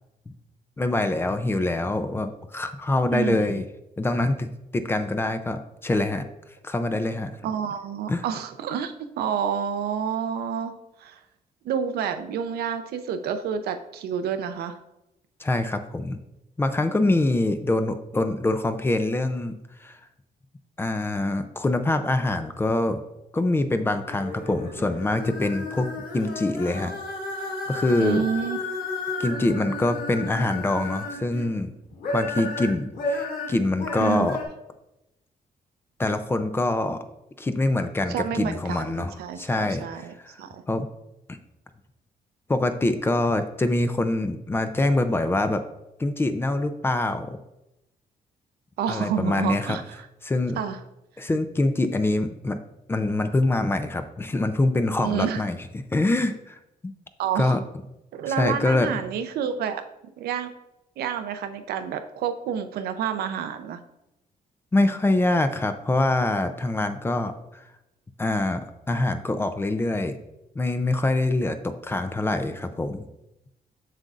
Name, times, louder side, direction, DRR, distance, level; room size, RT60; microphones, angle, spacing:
voice 1, 0.8-3.7 4.0-6.3 6.6-7.4 8.1-8.2 15.4-16.2 16.6-19.5 19.8-20.0 20.8-23.0 23.3-26.9 27.4-28.2 29.2-31.7 32.1-34.4 36.0-37.0 37.4-39.8 40.2-40.9 41.3-41.4 42.5-45.6 46.0-47.4 48.9-49.8 50.2-50.6 51.2-52.6 52.9-56.9 57.4-57.6 58.3-58.9 64.7-67.6 68.2-70.2 70.6-73.0, left 2 dB, 15° left, 9 dB, 0.4 m, -25 dB
voice 2, 3.1-3.6 7.4-10.7 11.0-11.2 11.6-14.8 28.0-28.6 34.0-34.3 38.1-40.6 48.8-49.8 50.6-50.8 55.0-55.5 57.2-57.6 58.1-59.8 60.2-60.5 61.0-63.8, right 8 dB, 85° right, 8 dB, 0.6 m, -29 dB
sound 1, 24.0-31.5 31.9-34.4, left 2 dB, 65° left, 1.7 m, -33 dB
7.5 x 6.6 x 2.5 m, 0.89 s
cardioid pair, 150°, 16 cm